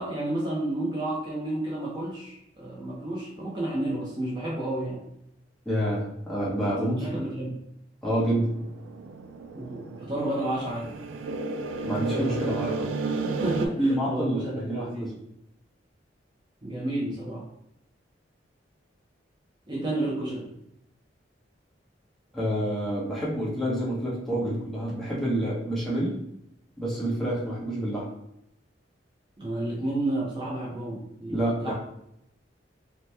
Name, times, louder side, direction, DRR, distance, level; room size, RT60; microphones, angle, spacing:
voice 1, 0.0-5.0 6.7-7.6 9.5-11.0 13.2-15.2 16.6-17.4 19.7-20.5 29.4-31.7, right 1 dB, 25° right, -5 dB, 0.6 m, -31 dB
voice 2, 5.6-7.2 8.0-8.5 11.8-12.9 13.8-15.1 22.3-26.1 26.8-28.1 31.3-31.7, right 1 dB, ahead, -7 dB, 0.9 m, -28 dB
sound 1, 8.2-13.7, right 3 dB, 90° right, 0.3 m, -33 dB
2.8 x 2.1 x 3.3 m, 0.79 s
head